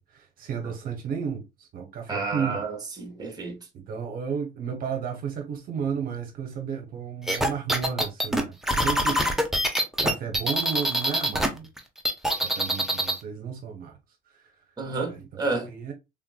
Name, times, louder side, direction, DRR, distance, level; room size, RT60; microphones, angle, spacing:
voice 1, 0.0-2.6 3.7-9.2 10.0-11.7 12.3-14.0 14.3-14.5 15.1-15.3 15.6-15.9, right 7 dB, 60° right, 0.7 m, -33 dB
voice 2, 2.1-3.6 14.8-15.7, right 3 dB, 25° right, 1.0 m, -30 dB
sound 1, 7.3-11.5 11.8-13.2, equal, ahead, 0.6 m, -24 dB
3.4 x 2.4 x 2.2 m
cardioid pair, 110°, 17 cm